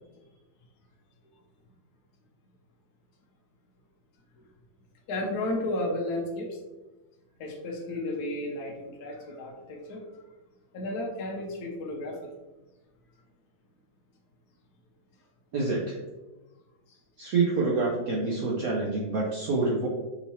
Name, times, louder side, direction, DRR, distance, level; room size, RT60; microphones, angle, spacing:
voice 1, 5.1-6.6 7.4-10.0 10.7-12.2 16.9-17.0, left 1 dB, 60° left, -2 dB, 1.2 m, -33 dB
voice 2, 15.5-16.0 17.2-19.9, right 3 dB, 60° right, -3 dB, 1.0 m, -27 dB
5.5 x 2.8 x 2.9 m, 1.1 s
omnidirectional pair, 2.0 m